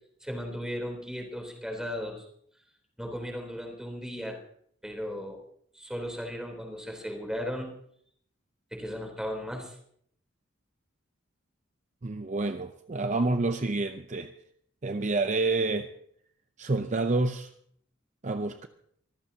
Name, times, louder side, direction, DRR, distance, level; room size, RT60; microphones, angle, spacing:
voice 1, 0.2-2.2 3.0-4.4 4.8-5.4 5.7-7.7 8.7-9.8, equal, 5° right, 3.6 m, -36 dB
voice 2, 12.0-14.3 14.8-15.9 16.6-17.5 18.2-18.7, right 3 dB, 40° right, 0.6 m, -28 dB
25.0 x 14.5 x 2.9 m
head